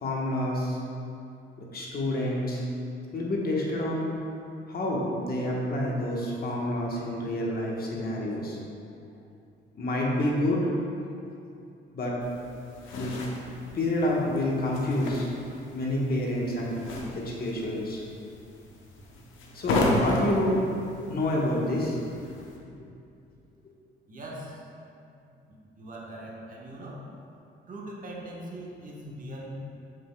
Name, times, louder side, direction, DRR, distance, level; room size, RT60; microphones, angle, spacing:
voice 1, 0.0-0.8 1.6-2.7 3.1-4.1 4.7-8.7 9.7-10.7 11.9-12.1 12.9-13.4 13.7-15.3 15.7-16.8 17.1-18.0 19.5-20.6 21.1-22.0, left 1 dB, 50° left, -3 dB, 1.2 m, -28 dB
sound 1, 12.2-22.6, left 2 dB, 80° left, 0.9 m, -34 dB
voice 2, 24.1-24.7 25.7-27.0 27.7-29.5, right 1 dB, 40° right, -3 dB, 1.2 m, -41 dB
7.0 x 6.3 x 2.2 m, 2.6 s
cardioid pair, 90°, 20 cm